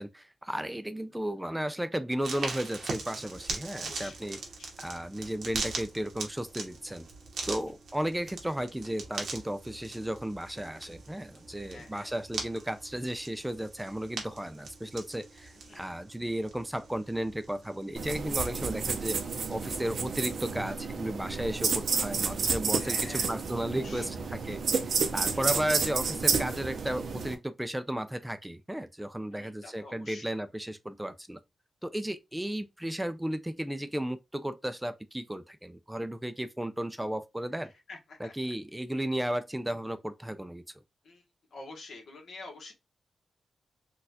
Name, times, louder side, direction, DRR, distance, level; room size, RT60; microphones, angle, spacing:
voice 1, 0.0-4.4 4.8-7.1 7.5-19.2 19.5-31.4 31.8-37.7 38.2-40.6, right 1 dB, 10° right, 0.3 m, -34 dB
sound 1, 2.2-20.6, right 3 dB, 90° right, 1.1 m, -42 dB
voice 2, 3.6-4.7 11.7-12.1 15.7-16.0 22.8-23.2 23.5-24.0 29.3-30.3 37.9-38.3 41.0-41.2 41.5-42.7, left 3 dB, 80° left, 1.1 m, -47 dB
sound 2, 18.0-27.3, right 5 dB, 70° right, 0.6 m, -31 dB
4.0 x 2.3 x 2.7 m
wide cardioid pair, 95°, 0 cm